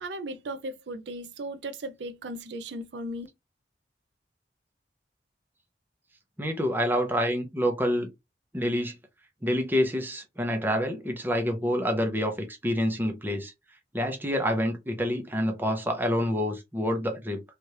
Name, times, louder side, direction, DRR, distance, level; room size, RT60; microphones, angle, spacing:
voice 1, 0.0-3.3, right 1 dB, 85° right, 0.5 m, -36 dB
voice 2, 6.4-8.1 8.5-9.0 9.4-13.5 13.9-17.4, equal, 10° right, 0.6 m, -27 dB
3.1 x 2.4 x 2.8 m
head